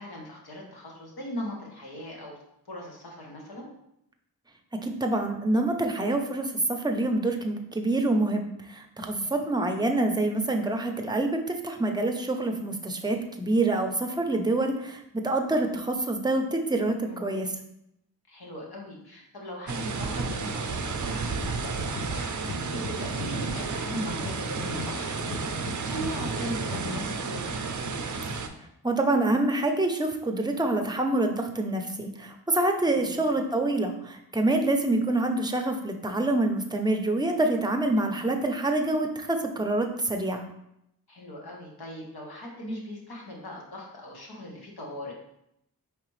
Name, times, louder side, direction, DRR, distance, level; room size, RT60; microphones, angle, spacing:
voice 1, 0.0-2.4 2.7-3.7 17.1-17.4 18.3-27.6 32.9-33.2 41.1-45.1, equal, 75° left, -2 dB, 1.2 m, -39 dB
voice 2, 4.8-17.5 28.8-40.5, right 2 dB, 10° right, 4 dB, 0.6 m, -26 dB
sound 1, 19.7-28.5, right 4 dB, 50° right, 0.5 m, -32 dB
sound 2, 21.4-27.1, left 3 dB, 50° left, 0.7 m, -40 dB
4.9 x 3.3 x 3.1 m, 0.79 s
wide cardioid pair, 50°, 38 cm